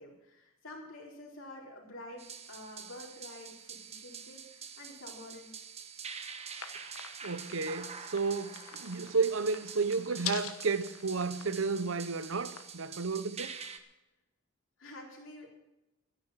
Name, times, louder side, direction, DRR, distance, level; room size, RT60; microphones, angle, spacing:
voice 1, 0.0-5.5 14.8-15.5, left 1 dB, 65° left, 4.2 m, -48 dB
sound 1, 2.2-13.8, right 6 dB, 30° right, 1.1 m, -46 dB
sound 2, 6.5-12.6, left 10 dB, 85° left, 1.2 m, -46 dB
voice 2, 7.2-13.6, right 4 dB, 65° right, 0.9 m, -32 dB
13.0 x 10.5 x 7.3 m
head